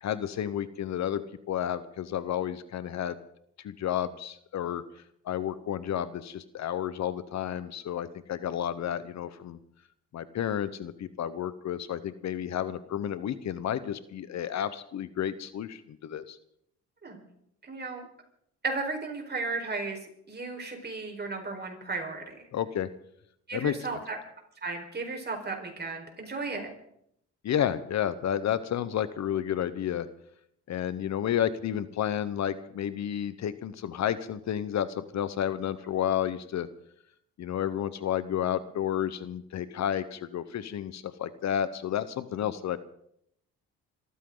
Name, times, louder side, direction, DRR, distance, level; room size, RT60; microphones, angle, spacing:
voice 1, 0.0-3.2 3.6-4.8 5.2-9.6 10.1-16.4 22.5-22.9 23.5-23.7 27.4-30.1 30.7-36.7 37.4-42.8, left 10 dB, 65° left, 14 dB, 1.1 m, -31 dB
voice 2, 17.6-18.1 18.6-22.4 23.5-24.2 24.6-26.7, right 3 dB, 35° right, 3 dB, 4.8 m, -35 dB
25.5 x 14.0 x 4.0 m, 0.72 s
cardioid pair, 90°, 30 cm